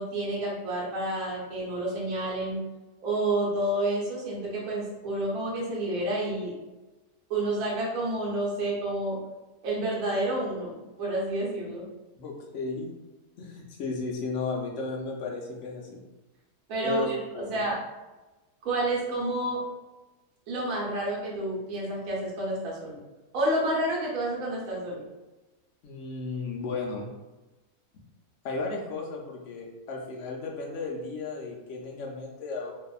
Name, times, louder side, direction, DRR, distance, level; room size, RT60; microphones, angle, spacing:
voice 1, 0.0-2.6 3.0-6.6 7.3-9.2 9.6-11.9 16.7-17.8 18.6-19.6 20.5-23.0 23.3-25.0, right 1 dB, 65° right, -4 dB, 1.1 m, -29 dB
voice 2, 12.2-12.9 13.4-16.0 16.8-17.5 25.8-27.1 28.4-32.7, left 3 dB, 65° left, -1 dB, 0.7 m, -34 dB
2.7 x 2.5 x 2.2 m, 1.1 s
omnidirectional pair, 1.7 m